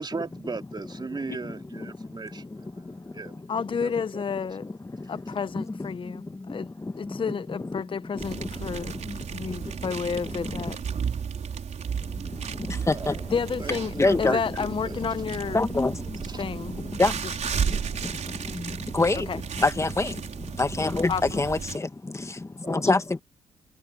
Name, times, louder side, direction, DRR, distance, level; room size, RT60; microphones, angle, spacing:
voice 1, 0.0-3.4 3.8-4.2 12.8-13.2 13.6-15.0 15.5-15.6 16.3-16.4 22.6-22.8, right 4 dB, 30° right, 3.1 m, -37 dB
voice 2, 3.5-4.7 5.1-6.2 6.5-6.7 7.0-8.9 9.3-10.8 13.3-15.6 16.4-16.7 19.3-19.4 21.1-21.4, left 6 dB, 40° left, 0.7 m, -30 dB
sound 1, 8.2-21.8, right 7 dB, 60° right, 4.8 m, -34 dB
voice 3, 14.0-14.4 15.5-15.9 17.0-17.1 18.9-19.3 19.6-20.1 20.6-21.9 22.7-23.2, left 3 dB, 20° left, 1.9 m, -23 dB
cardioid pair, 65°, 14 cm